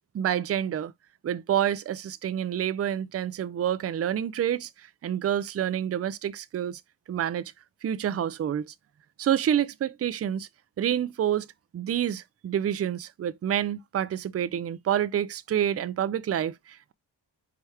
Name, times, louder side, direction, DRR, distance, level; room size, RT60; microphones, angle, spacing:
voice 1, 0.1-0.9 1.2-4.7 5.0-6.8 7.1-7.5 7.8-8.7 9.2-10.5 10.8-11.5 11.7-16.9, right 10 dB, 40° right, 0.4 m, -28 dB
4.7 x 2.9 x 3.2 m
cardioid pair, 80°, 40 cm